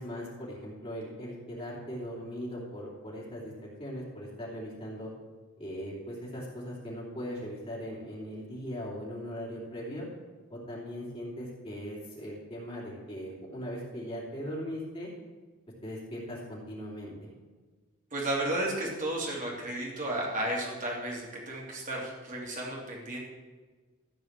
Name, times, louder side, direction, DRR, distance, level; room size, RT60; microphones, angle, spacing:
voice 1, 0.0-5.1 5.6-10.1 10.5-15.1 15.8-17.3, equal, 25° left, -6 dB, 3.0 m, -39 dB
voice 2, 18.1-23.2, right 1 dB, 35° right, -3 dB, 3.0 m, -33 dB
14.5 x 4.9 x 7.5 m, 1.3 s
head